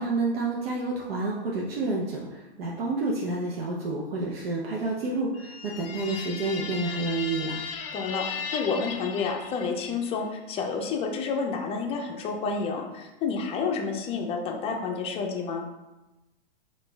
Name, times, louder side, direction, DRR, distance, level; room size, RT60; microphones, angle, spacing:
voice 1, 0.0-7.6, right 3 dB, 75° right, -3 dB, 0.7 m, -29 dB
sound 1, 5.3-10.1, left 6 dB, 75° left, 0.5 m, -37 dB
voice 2, 7.9-15.6, left 5 dB, 20° left, 2 dB, 0.5 m, -30 dB
4.1 x 2.4 x 3.3 m, 1.0 s
hypercardioid pair, 115°, 30 cm